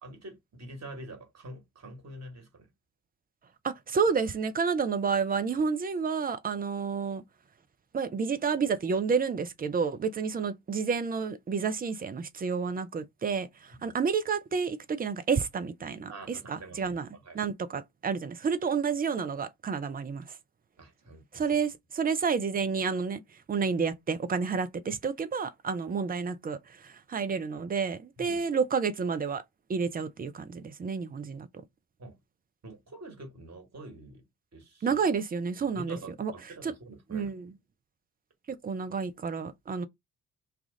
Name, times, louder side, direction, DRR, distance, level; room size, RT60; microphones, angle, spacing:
voice 1, 0.0-2.7 16.1-17.4 20.8-21.4 28.2-28.4 32.0-32.2 32.6-34.2 34.5-35.0 35.7-37.3, right 2 dB, 35° right, 1.7 m, -46 dB
voice 2, 3.6-7.2 7.9-17.1 17.3-20.4 21.3-23.2 23.5-29.4 29.7-31.5 34.8-36.3 36.6-36.7 37.1-37.5 38.5-39.9, right 5 dB, 20° right, 0.6 m, -30 dB
3.3 x 2.4 x 3.8 m
figure-of-eight pair, 40°, 43 cm